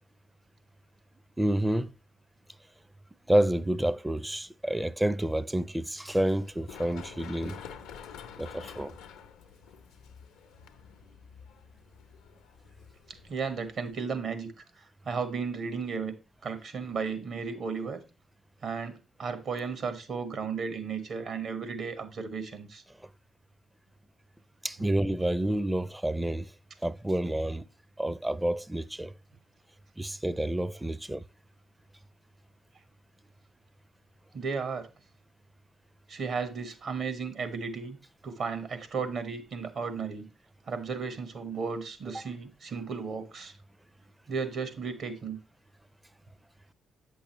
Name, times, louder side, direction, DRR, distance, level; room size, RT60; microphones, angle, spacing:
voice 1, 1.4-1.9 3.3-7.6 8.4-8.9 24.6-26.5 26.8-27.6 28.0-29.1 30.0-31.2, right 1 dB, 10° right, 0.5 m, -29 dB
Run, 6.4-13.9, left 7 dB, 85° left, 0.6 m, -48 dB
voice 2, 13.1-16.1 16.4-18.0 18.6-22.8 24.8-24.9 34.3-34.9 36.1-38.0 38.2-40.3 40.7-43.5 44.3-45.4, right 5 dB, 65° right, 1.3 m, -34 dB
8.2 x 6.2 x 3.0 m
supercardioid pair, 55°, 0 cm